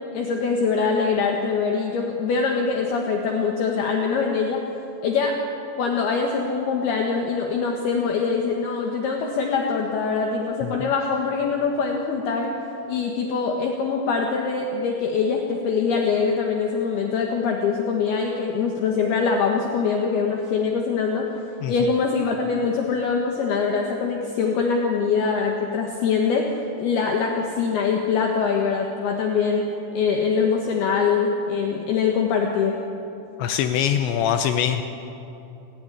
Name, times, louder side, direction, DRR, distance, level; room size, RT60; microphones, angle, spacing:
voice 1, 0.1-4.6 5.0-5.4 5.8-12.5 12.9-21.3 21.7-26.5 26.8-29.6 29.9-32.8, left 5 dB, 65° left, 1 dB, 3.2 m, -23 dB
voice 2, 33.4-34.8, left 9 dB, 80° left, 7 dB, 3.0 m, -22 dB
28.5 x 15.5 x 9.9 m, 2.8 s
omnidirectional pair, 5.4 m